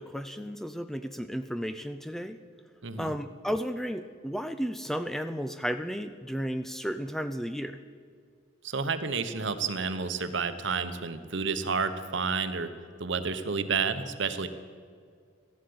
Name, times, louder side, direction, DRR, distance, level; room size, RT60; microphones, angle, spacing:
voice 1, 0.0-2.4 3.0-7.8, equal, ahead, 10 dB, 0.4 m, -33 dB
voice 2, 2.8-3.2 8.6-12.7 13.0-14.5, right 5 dB, 65° right, 11 dB, 1.0 m, -30 dB
14.5 x 11.5 x 8.6 m, 2.1 s
head